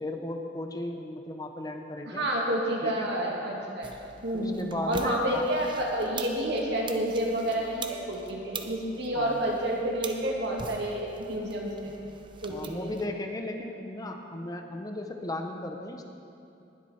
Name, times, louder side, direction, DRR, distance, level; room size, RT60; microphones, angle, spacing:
voice 1, 0.0-2.2 2.8-3.1 4.3-5.4 9.2-9.4 12.5-16.1, left 1 dB, 20° left, 4 dB, 0.7 m, -36 dB
voice 2, 2.1-3.9 4.2-11.9 12.4-12.9, right 1 dB, 65° right, -2 dB, 2.2 m, -29 dB
sound 1, 3.8-13.1, right 4 dB, 25° right, 0.7 m, -43 dB
20.0 x 7.9 x 4.3 m, 2.7 s
head